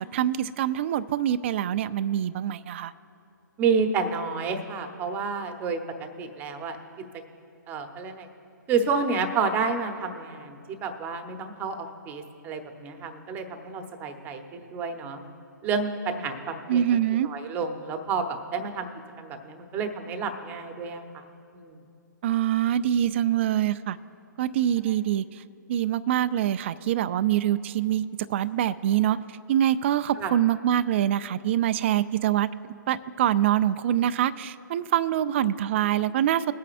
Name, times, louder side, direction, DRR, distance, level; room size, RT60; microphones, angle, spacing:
voice 1, 0.0-2.9 16.7-17.3 22.2-24.0 24.4-25.4 25.7-28.0 28.3-32.5 32.9-36.5, right 11 dB, 35° right, 12 dB, 0.3 m, -25 dB
voice 2, 3.6-5.8 6.2-6.8 7.7-8.3 8.7-15.2 15.6-16.8 17.2-18.9 19.2-21.2 21.5-21.8 30.2-30.3, right 5 dB, 15° right, 6 dB, 0.9 m, -30 dB
21.5 x 8.4 x 2.5 m, 2.6 s
hypercardioid pair, 145°, 11 cm